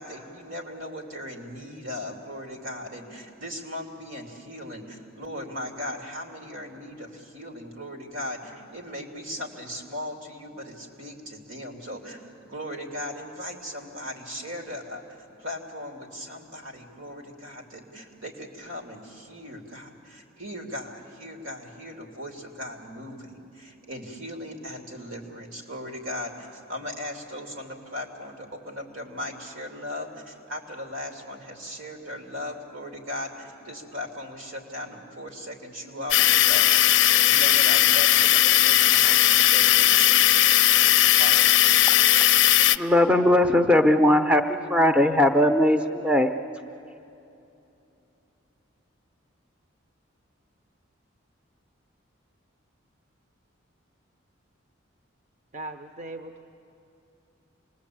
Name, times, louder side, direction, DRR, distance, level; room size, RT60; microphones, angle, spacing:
voice 1, 0.0-40.5 41.1-41.8, left 1 dB, 85° right, 2 dB, 3.1 m, -38 dB
sound 1, 36.1-42.8, left 13 dB, 60° left, 0.5 m, -18 dB
voice 2, 42.7-46.3, left 1 dB, 5° right, 6 dB, 0.6 m, -19 dB
voice 3, 55.5-56.4, right 2 dB, 35° right, 6 dB, 0.8 m, -38 dB
26.5 x 20.5 x 8.7 m, 2.8 s
head